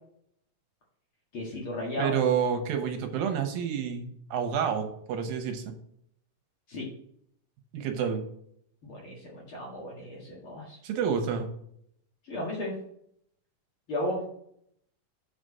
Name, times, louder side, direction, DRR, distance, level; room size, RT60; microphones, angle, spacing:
voice 1, 1.3-2.2 6.7-6.9 8.8-10.8 12.2-12.7 13.9-14.2, left 1 dB, 45° left, -3 dB, 2.1 m, -34 dB
voice 2, 2.0-5.7 7.7-8.2 10.8-11.5, right 7 dB, 85° right, 5 dB, 2.8 m, -29 dB
7.2 x 5.1 x 5.3 m, 0.70 s
omnidirectional pair, 4.0 m